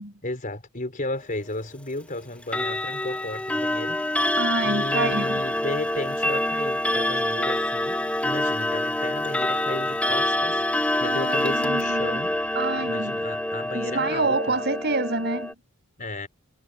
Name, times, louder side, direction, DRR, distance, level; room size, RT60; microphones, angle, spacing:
voice 1, 0.2-4.1 4.6-12.4 12.8-14.4 16.0-16.3, left 2 dB, 40° left, 4.6 m, -34 dB
Clock, 2.4-15.5, left 1 dB, 5° left, 0.7 m, -26 dB
voice 2, 4.4-5.5 11.0-12.3 12.5-13.2 13.7-15.5, right 3 dB, 50° right, 7.1 m, -27 dB
head